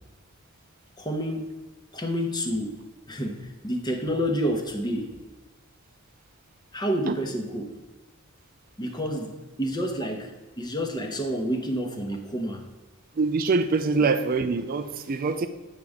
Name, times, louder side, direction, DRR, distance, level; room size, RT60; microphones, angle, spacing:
voice 1, 1.0-1.5 1.9-2.8 3.1-5.2 6.7-7.6 8.8-12.6, equal, 20° left, 3 dB, 0.9 m, -29 dB
voice 2, 13.2-15.5, right 4 dB, 40° right, 8 dB, 0.4 m, -24 dB
8.4 x 3.6 x 6.4 m, 1.2 s
head